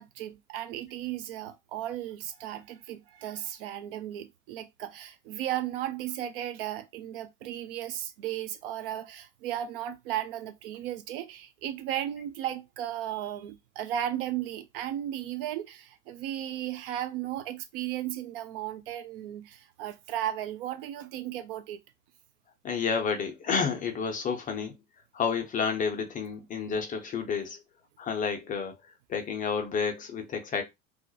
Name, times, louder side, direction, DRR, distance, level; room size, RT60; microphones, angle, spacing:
voice 1, 0.0-21.8, right 12 dB, 45° right, 0.4 m, -35 dB
voice 2, 22.6-24.8 25.1-27.6 28.0-28.8 29.1-30.6, left 6 dB, 20° left, 0.5 m, -30 dB
2.4 x 2.1 x 2.6 m
figure-of-eight pair, 80°, 40 cm